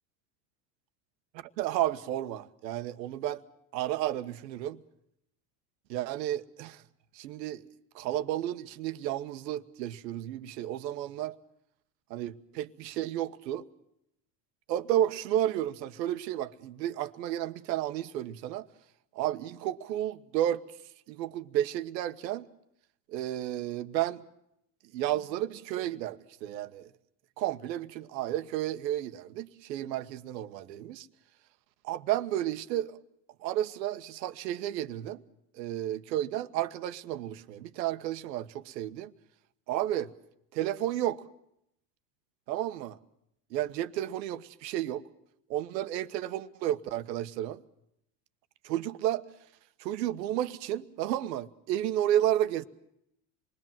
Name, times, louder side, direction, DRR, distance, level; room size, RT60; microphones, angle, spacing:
voice 1, 1.3-3.4 3.7-4.8 5.9-6.8 7.1-7.6 7.9-11.4 12.1-13.6 14.7-18.7 19.1-20.6 21.1-22.5 23.1-24.2 24.9-26.9 27.4-31.1 31.8-33.0 33.4-35.2 35.5-39.1 39.7-40.1 40.5-41.2 42.5-43.0 43.5-45.0 45.5-47.6 48.6-49.2 49.8-52.6, right 12 dB, 80° right, 1.4 m, -32 dB
27.5 x 20.5 x 7.5 m
supercardioid pair, 100°, 49 cm